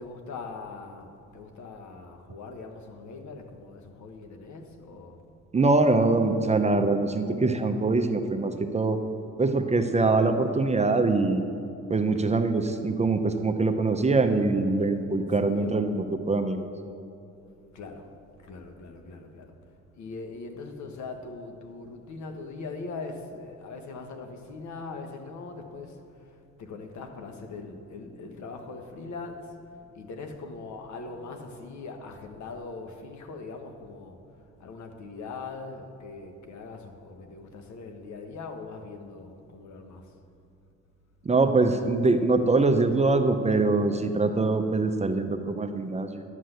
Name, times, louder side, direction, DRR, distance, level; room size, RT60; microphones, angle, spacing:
voice 1, 0.0-5.3 12.1-12.4 15.4-15.9 17.7-18.1 18.4-19.5 19.9-40.2, left 3 dB, 70° left, 5 dB, 1.3 m, -41 dB
voice 2, 5.5-9.0 9.4-11.4 11.9-16.7 41.2-46.2, right 3 dB, 20° right, 7 dB, 0.7 m, -23 dB
11.5 x 6.1 x 7.9 m, 2.6 s
cardioid pair, 90°, 30 cm